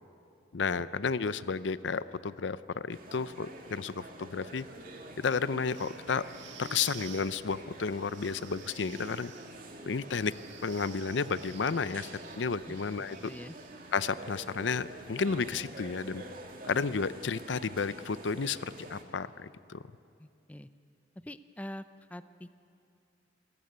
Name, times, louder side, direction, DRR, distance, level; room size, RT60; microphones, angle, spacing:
voice 1, 0.5-4.7 5.2-6.3 6.6-9.3 9.8-10.3 10.6-12.1 12.4-13.2 13.9-16.2 16.7-19.8, left 5 dB, 80° left, 15 dB, 0.6 m, -32 dB
sound 1, 2.9-19.0, right 1 dB, 50° right, 2.3 m, -47 dB
sound 2, 5.6-13.9, right 9 dB, 85° right, 1.5 m, -52 dB
voice 2, 13.2-13.6 20.2-20.7 21.2-21.8 22.1-22.5, left 1 dB, 10° left, 12 dB, 0.5 m, -44 dB
27.5 x 15.5 x 9.4 m, 2.6 s
head